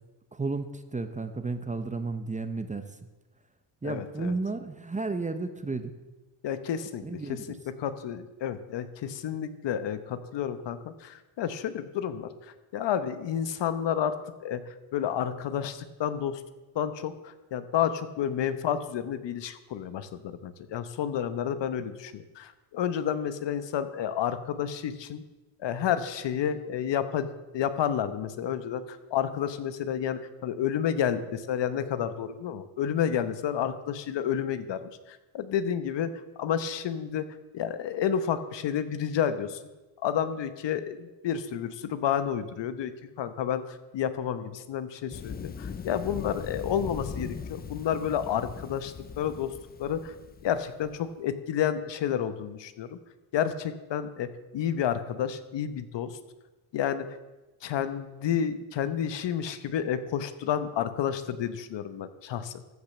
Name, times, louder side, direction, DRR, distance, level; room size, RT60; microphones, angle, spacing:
voice 1, 0.3-3.0 3.8-5.9 7.0-7.6, right 3 dB, 15° right, 9 dB, 0.8 m, -33 dB
voice 2, 3.8-4.3 6.4-7.0 7.3-7.4 7.7-14.2 14.4-16.4 16.7-25.2 25.6-36.1 36.4-37.3 37.5-39.6 40.0-42.9 43.2-49.5 49.8-50.1 50.4-53.0 53.3-56.2 56.7-57.2 57.6-62.6, left 9 dB, 60° left, 12 dB, 1.0 m, -30 dB
Thunder, 45.1-51.0, left 6 dB, 20° left, 0.3 m, -40 dB
14.5 x 5.4 x 7.4 m, 1.1 s
cardioid pair, 100°, 49 cm